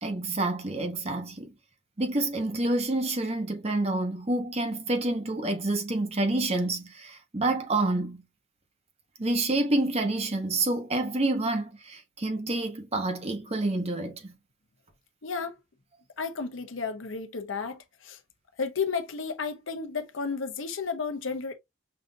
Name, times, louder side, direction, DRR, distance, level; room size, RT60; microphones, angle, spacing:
voice 1, 0.0-1.5 2.0-8.2 9.2-14.4, right 2 dB, 35° right, 0.9 m, -28 dB
voice 2, 15.2-15.6 16.2-18.2 18.6-21.5, left 5 dB, 80° left, 0.8 m, -32 dB
5.7 x 2.6 x 2.6 m
head